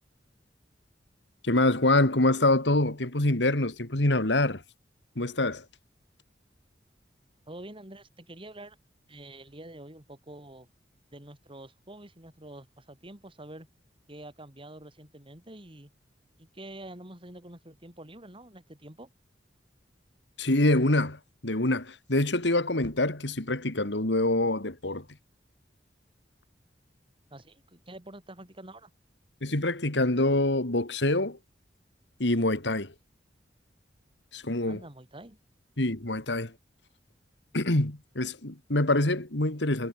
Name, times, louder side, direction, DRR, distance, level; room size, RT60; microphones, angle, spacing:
voice 1, 1.4-4.6 5.2-5.6 20.4-25.0 29.4-31.4 32.2-32.9 34.3-34.8 35.8-36.5 37.5-39.9, left 2 dB, 75° left, 2.7 m, -25 dB
voice 2, 7.5-8.8 9.1-10.7 11.1-13.7 14.1-15.9 16.4-19.1 27.3-28.9 34.7-35.4, right 1 dB, 30° right, 7.1 m, -46 dB
head